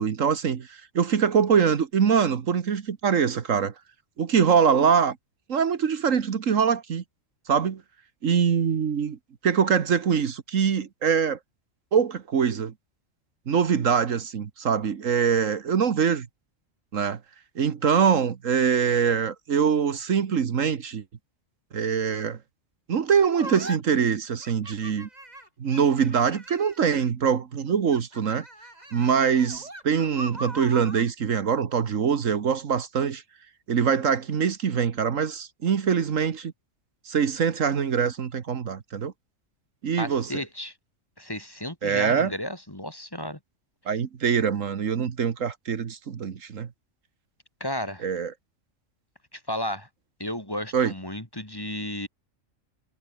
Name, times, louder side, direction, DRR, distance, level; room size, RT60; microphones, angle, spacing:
voice 1, 0.0-3.7 4.2-5.2 5.5-7.0 7.5-7.8 8.2-9.2 9.4-11.4 11.9-12.7 13.5-16.3 16.9-17.2 17.5-21.0 21.7-22.4 22.9-25.1 25.6-28.4 28.9-33.2 33.7-36.5 37.1-39.1 39.8-40.3 41.8-42.3 43.9-46.7 48.0-48.3 50.7-50.9, right 7 dB, 75° right, 1.7 m, -23 dB
sound 1, 23.4-23.8 24.4-27.2 27.8-31.1, right 1 dB, 30° right, 4.8 m, -41 dB
voice 2, 40.0-40.7 41.2-43.4 47.6-48.0 49.3-49.9 50.2-52.1, left 1 dB, 15° left, 3.1 m, -33 dB
omnidirectional pair, 1.4 m